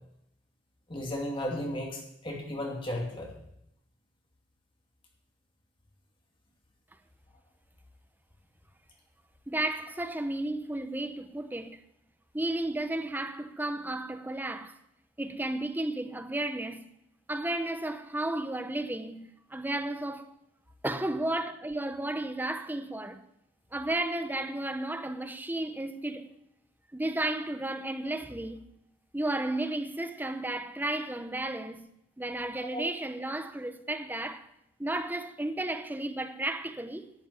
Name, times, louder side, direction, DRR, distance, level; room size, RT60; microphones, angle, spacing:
voice 1, 0.9-3.3 32.6-32.8, left 1 dB, 30° left, 2.6 m, -34 dB
voice 2, 9.5-11.8 12.3-14.8 15.2-16.8 17.3-19.2 19.5-20.3 20.8-23.2 23.7-26.3 26.9-28.6 29.1-31.8 32.2-34.5 34.8-37.1, right 1 dB, 10° right, 0.8 m, -33 dB
11.0 x 7.3 x 9.6 m
head